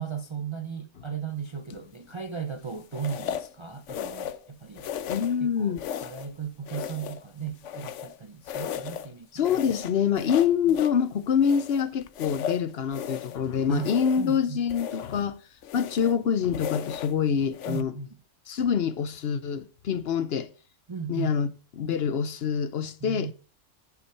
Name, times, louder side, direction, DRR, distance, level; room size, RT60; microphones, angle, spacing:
voice 1, 0.0-4.9 5.4-9.5 10.2-10.3 13.7-14.6 17.7-18.1 20.9-21.4 23.0-23.3, right 7 dB, 40° right, 0.4 m, -36 dB
sound 1, 1.7-2.0 2.9-3.5 3.9-4.5 4.8-5.4 5.8-6.3 6.7-8.2 8.5-9.1 9.4-11.0 11.4-13.4 13.8-14.4 14.7-15.2 15.6-16.2 16.5-17.2 17.5-17.8, left 9 dB, 80° left, 1.0 m, -36 dB
voice 2, 5.1-5.8 9.3-15.4 15.7-18.0 18.5-20.5 21.1-21.5 21.8-23.3, left 7 dB, 60° left, 0.8 m, -26 dB
10.5 x 5.8 x 4.5 m
omnidirectional pair, 1.3 m